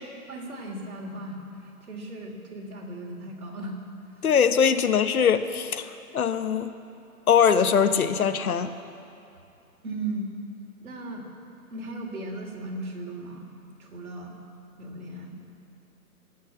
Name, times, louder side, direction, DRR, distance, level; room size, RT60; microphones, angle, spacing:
voice 1, 0.3-3.7 9.8-10.3 10.8-11.3 11.7-13.5 13.8-14.4 14.8-15.4, right 2 dB, 65° right, 0 dB, 3.4 m, -36 dB
voice 2, 4.2-5.9 6.1-6.7 7.3-8.7, left 7 dB, 70° left, 10 dB, 1.0 m, -21 dB
19.0 x 6.5 x 9.5 m, 2.6 s
hypercardioid pair, 170°, 45 cm